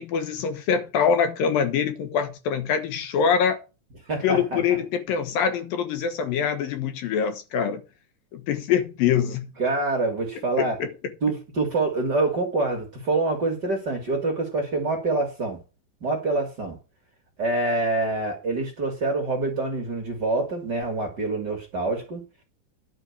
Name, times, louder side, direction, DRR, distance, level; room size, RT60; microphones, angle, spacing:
voice 1, 0.0-3.6 4.2-7.8 8.3-9.5 10.6-10.9, left 7 dB, 80° left, 3.1 m, -24 dB
voice 2, 4.1-4.8 9.6-10.8 11.2-15.6 16.0-16.8 17.4-22.2, right 2 dB, 35° right, 2.1 m, -26 dB
10.5 x 5.2 x 7.3 m
omnidirectional pair, 4.1 m